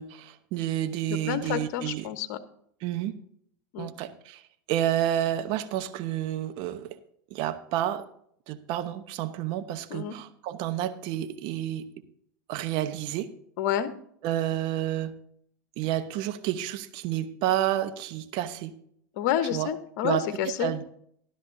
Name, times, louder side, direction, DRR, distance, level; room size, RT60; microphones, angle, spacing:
voice 1, 0.0-2.1 2.8-3.1 3.8-4.4 4.7-7.0 7.3-8.1 8.5-11.9 12.5-13.3 14.2-15.1 15.8-18.7 19.5-19.7 20.0-20.2 20.6-20.8, right 12 dB, 55° right, 11 dB, 1.0 m, -30 dB
voice 2, 1.1-2.4 3.7-3.9 9.9-10.2 13.6-13.9 19.1-20.7, left 10 dB, 65° left, 11 dB, 1.1 m, -29 dB
13.5 x 12.0 x 2.8 m, 0.67 s
hypercardioid pair, 100°, 10 cm